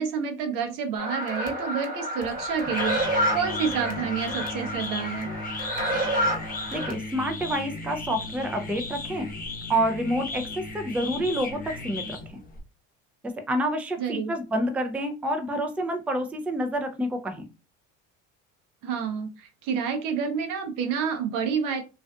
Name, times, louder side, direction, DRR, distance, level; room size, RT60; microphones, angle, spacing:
voice 1, 0.0-5.3 14.0-14.3 18.8-21.8, right 6 dB, 70° right, 6 dB, 0.7 m, -29 dB
sound 1, 1.0-6.9, equal, 25° right, 1.0 m, -29 dB
sound 2, 2.2-12.6, left 3 dB, 25° left, 0.8 m, -36 dB
voice 2, 6.7-9.3 9.7-12.4 13.5-17.5, equal, 5° right, 6 dB, 0.4 m, -28 dB
2.5 x 2.4 x 2.2 m, 0.30 s
supercardioid pair, 85°, 34 cm